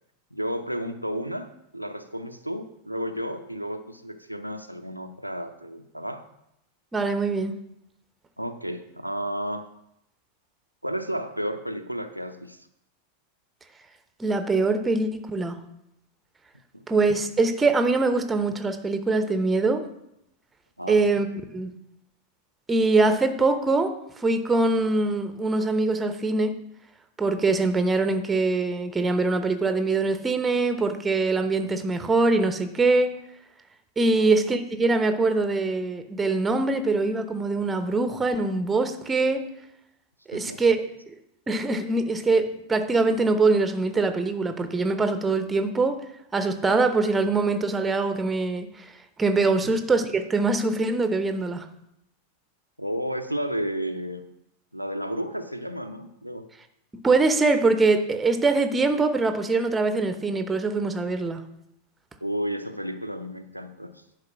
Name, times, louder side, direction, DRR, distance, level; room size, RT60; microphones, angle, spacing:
voice 1, 0.3-1.5 1.7-6.3 8.4-9.7 10.8-12.7 16.7-16.8 20.8-21.0 34.1-34.3 40.3-40.6 52.8-54.3 54.7-56.5 62.2-64.0, equal, 90° right, 6 dB, 0.6 m, -32 dB
voice 2, 6.9-7.5 14.2-15.6 16.9-19.8 20.9-21.3 21.5-21.7 22.7-26.6 27.2-33.1 34.0-39.4 40.3-40.8 41.1-41.2 41.5-46.0 46.3-48.9 49.2-51.7 57.0-61.4, right 3 dB, 15° right, 9 dB, 0.9 m, -23 dB
10.5 x 5.0 x 6.1 m, 0.80 s
figure-of-eight pair, 90°, 0 cm